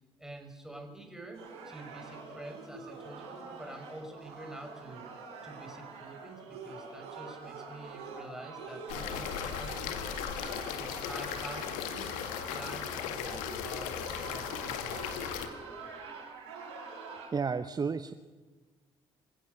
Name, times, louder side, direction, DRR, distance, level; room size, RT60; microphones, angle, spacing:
voice 1, 0.2-10.1 10.7-12.1 12.5-15.2, right 2 dB, 5° right, 4 dB, 5.8 m, -47 dB
sound 1, 1.3-17.3, right 4 dB, 75° right, 6.4 m, -46 dB
sound 2, 8.9-15.5, left 8 dB, 70° left, 1.9 m, -37 dB
voice 2, 17.3-18.1, right 5 dB, 30° right, 13 dB, 0.9 m, -31 dB
26.0 x 16.5 x 6.6 m, 1.3 s
figure-of-eight pair, 45°, 13 cm